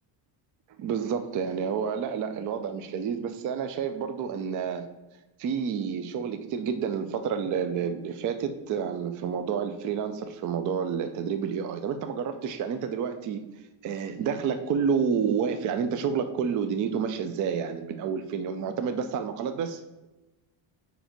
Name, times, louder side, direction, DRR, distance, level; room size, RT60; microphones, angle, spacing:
voice 1, 0.8-4.9 5.4-13.5 13.8-19.8, right 7 dB, 40° right, 9 dB, 0.4 m, -29 dB
5.0 x 4.4 x 5.1 m, 1.0 s
cardioid pair, 155°, 48 cm